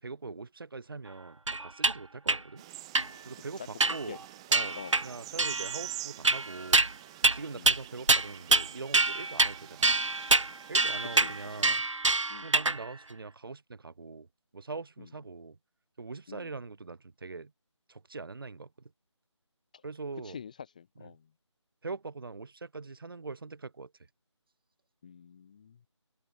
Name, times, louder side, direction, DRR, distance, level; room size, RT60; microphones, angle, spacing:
voice 1, 0.0-2.6 3.2-4.2 4.5-6.8 7.3-9.9 10.7-11.8 12.4-14.3 14.5-15.6 16.0-17.5 17.9-18.7 19.8-20.4 21.8-23.9, right 4 dB, 45° right, 5.9 m, -42 dB
sound 1, 1.5-1.9 2.3-2.4 2.9-3.1 3.8-4.1 4.5-5.0 5.4-5.8 6.2-6.9 7.2-7.4 7.7-7.8 8.1-8.7 8.9-9.5 9.8-12.8, right 3 dB, 75° right, 1.2 m, -25 dB
sound 2, 2.6-11.7, right 17 dB, 10° right, 1.6 m, -46 dB
voice 2, 3.6-4.2 4.8-5.0 7.5-7.7 11.1-11.7 12.3-12.5 15.0-15.1 16.3-16.6 19.7-19.8 20.2-21.3 25.0-25.8, left 7 dB, 15° left, 0.8 m, -47 dB
open air
figure-of-eight pair, 165°, 16 cm